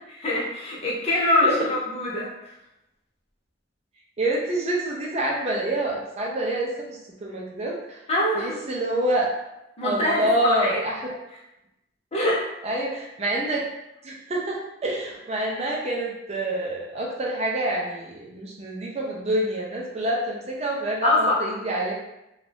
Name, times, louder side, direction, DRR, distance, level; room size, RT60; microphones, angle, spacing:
voice 1, 0.2-2.3 8.1-8.6 9.8-10.8 12.1-12.5 21.0-21.3, left 1 dB, 35° left, -5 dB, 0.8 m, -23 dB
voice 2, 4.2-8.0 8.3-9.3 9.8-11.0 12.6-13.6 14.0-21.9, right 1 dB, 35° right, -2 dB, 0.5 m, -27 dB
2.6 x 2.3 x 3.3 m, 0.90 s
head